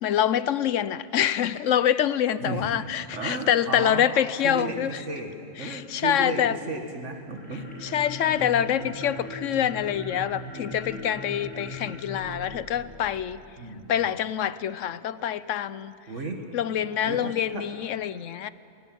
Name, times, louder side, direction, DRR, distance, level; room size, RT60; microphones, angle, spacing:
voice 1, 0.0-4.9 5.6-6.6 7.8-13.4 13.9-15.9 16.5-18.5, left 10 dB, 85° left, 16 dB, 1.1 m, -26 dB
voice 2, 2.4-2.7 3.1-4.1 4.4-5.3 5.6-8.0 8.3-8.4 8.8-8.9 13.6-14.1 16.1-16.4 17.1-17.7, right 3 dB, 75° right, 3 dB, 2.1 m, -34 dB
sound 1, 7.2-13.5, equal, 50° left, 6.8 m, -40 dB
21.5 x 18.5 x 9.2 m, 2.5 s
omnidirectional pair, 1.3 m